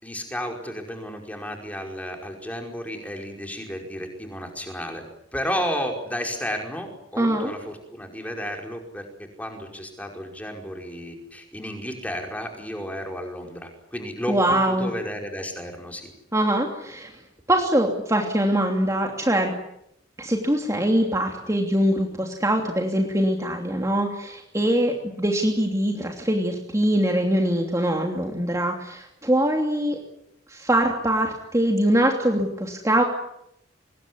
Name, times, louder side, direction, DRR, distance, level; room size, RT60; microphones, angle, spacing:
voice 1, 0.0-5.0 5.3-16.1, equal, 10° left, 3 dB, 5.1 m, -32 dB
voice 2, 7.2-7.5 14.3-14.9 16.3-17.2 17.5-19.5 20.2-30.0 30.5-33.0, right 1 dB, 15° right, 1 dB, 2.9 m, -23 dB
25.5 x 21.0 x 9.6 m, 0.78 s
head